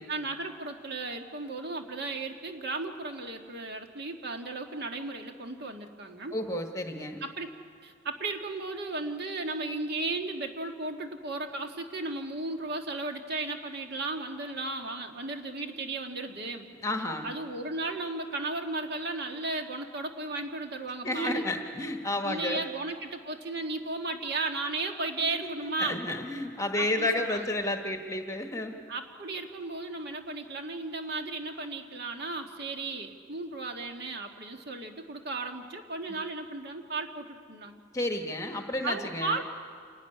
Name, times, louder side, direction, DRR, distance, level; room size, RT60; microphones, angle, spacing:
voice 1, 0.1-6.4 7.2-7.5 7.8-16.7 17.2-21.5 22.2-26.0 26.7-27.5 28.9-37.8 38.8-39.5, right 3 dB, 55° right, 4 dB, 1.8 m, -35 dB
voice 2, 6.3-7.2 16.8-17.3 21.0-22.6 25.6-28.8 37.9-39.4, left 1 dB, 15° left, 4 dB, 1.2 m, -31 dB
28.0 x 12.5 x 9.9 m, 2.1 s
head